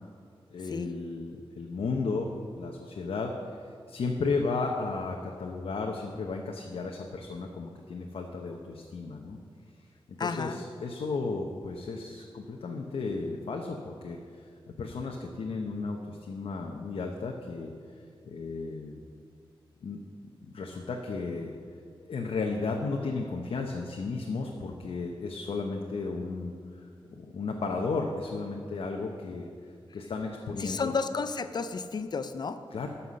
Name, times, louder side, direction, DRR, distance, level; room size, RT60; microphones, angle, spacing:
voice 1, 0.5-2.3 2.6-3.3 3.9-9.4 10.1-14.2 14.8-17.7 18.2-19.0 19.8-20.0 20.4-21.5 22.0-26.5 27.1-29.5 29.9-30.9 32.7-32.9, left 4 dB, 85° left, 1 dB, 0.9 m, -34 dB
voice 2, 10.2-10.6 30.6-32.6, left 4 dB, 50° left, 10 dB, 0.5 m, -32 dB
14.0 x 5.7 x 6.4 m, 2.2 s
wide cardioid pair, 175°, 9 cm